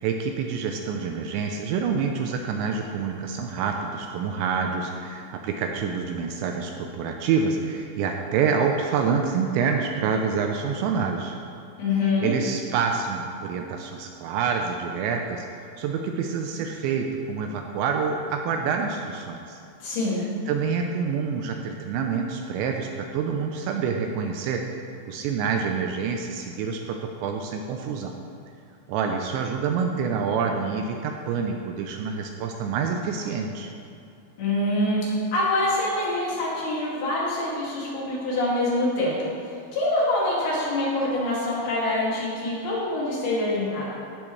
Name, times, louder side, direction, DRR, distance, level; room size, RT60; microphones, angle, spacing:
voice 1, 0.0-11.4 12.2-15.5 15.8-19.6 20.5-24.8 25.1-28.2 28.9-33.7, right 6 dB, 80° right, 3 dB, 2.7 m, -27 dB
voice 2, 11.8-12.3 19.8-20.2 34.4-35.0 35.3-39.2 39.7-44.0, left 2 dB, 55° left, -6 dB, 4.0 m, -25 dB
15.0 x 11.0 x 3.2 m, 2.5 s
omnidirectional pair, 5.6 m